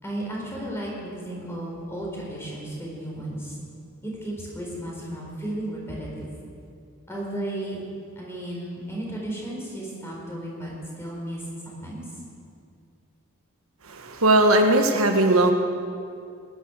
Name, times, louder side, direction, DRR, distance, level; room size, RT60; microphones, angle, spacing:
voice 1, 0.0-3.6 4.0-6.3 7.1-7.8 8.2-10.7 11.0-12.0, right 1 dB, 10° left, -4 dB, 4.2 m, -34 dB
voice 2, 13.8-15.5, right 1 dB, 80° right, 4 dB, 1.4 m, -19 dB
19.0 x 11.0 x 6.3 m, 2.4 s
head